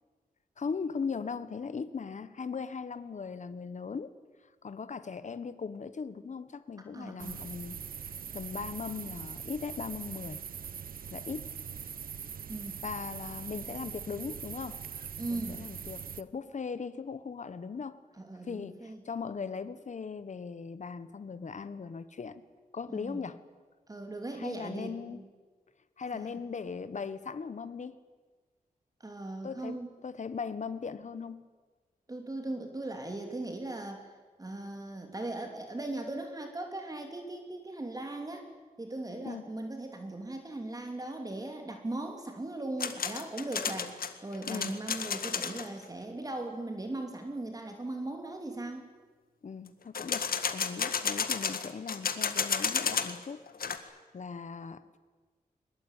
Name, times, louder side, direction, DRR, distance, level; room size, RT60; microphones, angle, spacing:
voice 1, 0.6-4.1 4.6-7.7 8.3-10.4 11.1-11.5 12.8-14.8 15.3-18.0 18.4-22.4 22.7-23.4 24.3-25.2 26.0-28.0 29.4-31.5 39.2-39.5 44.5-44.8 49.4-55.0, left 5 dB, 55° left, 13 dB, 1.4 m, -39 dB
voice 2, 6.9-7.4 12.5-12.8 15.2-15.6 18.2-19.0 22.9-23.2 23.9-25.3 26.1-26.4 29.0-30.0 32.1-34.1 34.4-38.5 38.8-48.9, right 2 dB, 25° right, 4 dB, 2.9 m, -39 dB
sound 1, 7.2-16.2, right 7 dB, 80° right, 0.9 m, -42 dB
sound 2, 42.8-45.7 49.9-53.2 53.5-53.8, left 6 dB, 85° left, 1.8 m, -32 dB
22.5 x 21.0 x 9.2 m, 1.4 s
wide cardioid pair, 110°, 15 cm